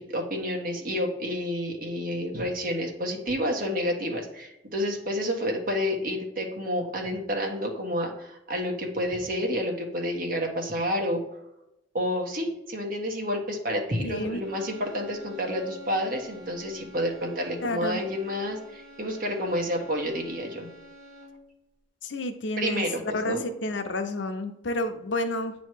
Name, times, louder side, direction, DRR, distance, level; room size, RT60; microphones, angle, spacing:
voice 1, 0.0-11.2 11.9-20.7 22.6-23.4, equal, 50° right, 2 dB, 1.4 m, -29 dB
voice 2, 14.0-14.4 17.6-18.0 22.0-25.5, left 1 dB, 75° left, 7 dB, 0.7 m, -30 dB
sound 1, 14.4-21.6, left 1 dB, ahead, 2.1 m, -48 dB
9.1 x 3.1 x 4.6 m, 0.86 s
head